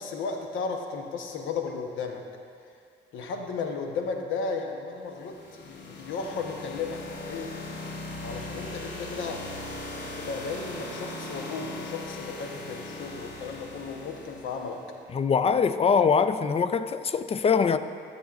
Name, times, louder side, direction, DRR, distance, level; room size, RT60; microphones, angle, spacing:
voice 1, 0.0-2.2 3.1-7.5 8.2-9.5 9.9-14.8, left 4 dB, 80° left, 0.9 m, -34 dB
sound 1, 5.1-14.9, left 2 dB, 65° left, 1.3 m, -39 dB
voice 2, 15.1-17.8, left 6 dB, 30° left, 0.3 m, -23 dB
14.0 x 7.3 x 2.4 m
cardioid pair, 90°, 20 cm